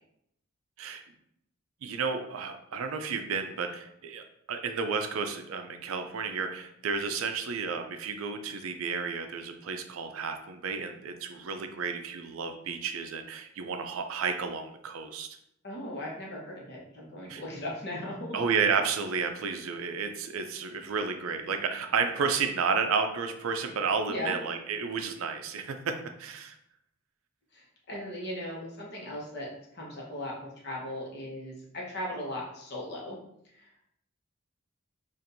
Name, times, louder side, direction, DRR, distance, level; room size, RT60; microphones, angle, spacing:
voice 1, 1.8-15.3 17.3-17.4 18.3-26.5, right 5 dB, 80° right, 6 dB, 0.4 m, -32 dB
voice 2, 15.6-18.4 24.1-24.4 27.5-33.2 33.5-33.7, left 1 dB, 50° left, -3 dB, 1.0 m, -38 dB
4.3 x 2.5 x 2.6 m, 0.75 s
head